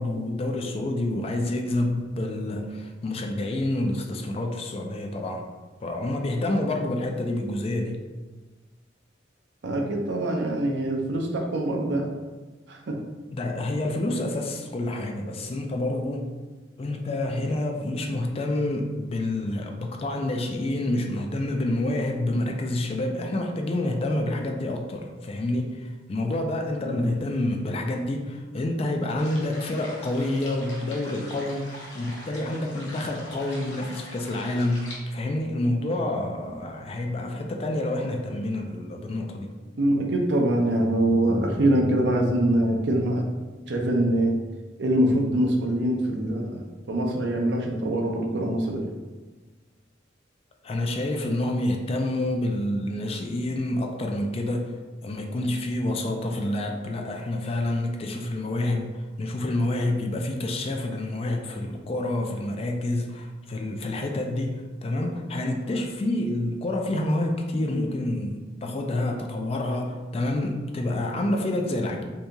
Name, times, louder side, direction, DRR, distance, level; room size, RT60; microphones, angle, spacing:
voice 1, 0.0-5.5 5.8-8.0 13.3-16.3 16.8-39.5 50.6-72.0, left 1 dB, 30° left, 3 dB, 0.3 m, -28 dB
voice 2, 9.6-12.1 12.7-13.0 26.8-27.1 39.8-43.2 43.7-44.4 44.8-48.9 67.7-67.8, right 1 dB, 65° right, 1 dB, 0.5 m, -24 dB
sound 1, 29.2-35.0, left 1 dB, 75° left, 0.9 m, -43 dB
2.8 x 2.7 x 3.4 m, 1.3 s
head